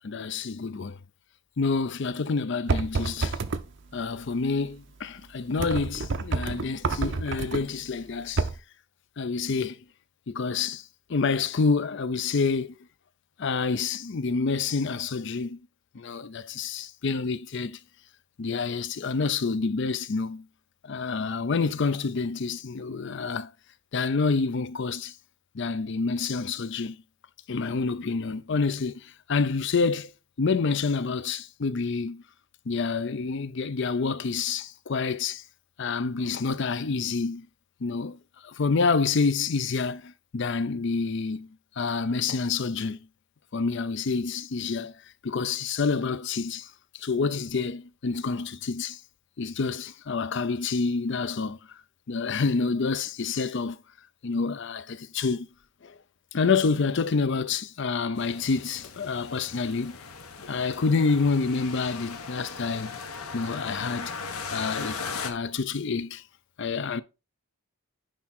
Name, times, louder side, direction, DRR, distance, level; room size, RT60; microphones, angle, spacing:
voice 1, 0.0-1.0 1.6-3.4 3.9-8.5 9.2-9.8 10.3-10.8 11.1-12.7 13.4-15.6 15.9-17.8 18.4-20.4 20.8-23.5 23.9-25.1 25.5-27.0 27.5-30.1 30.4-32.2 32.7-35.4 35.8-37.5 37.8-41.5 41.8-43.0 43.5-44.9 45.2-46.7 46.9-49.0 49.4-51.6 52.1-53.8 54.2-55.5 55.8-55.9 56.3-60.0 60.5-63.0 63.3-64.1 64.5-66.2 66.6-67.0, left 4 dB, 55° left, 0.5 m, -28 dB
sound 1, 2.7-3.6 5.6-7.6 8.4-8.6, right 3 dB, 55° right, 0.6 m, -28 dB
sound 2, 58.2-65.3, left 5 dB, 90° left, 1.1 m, -38 dB
10.0 x 3.7 x 4.2 m
head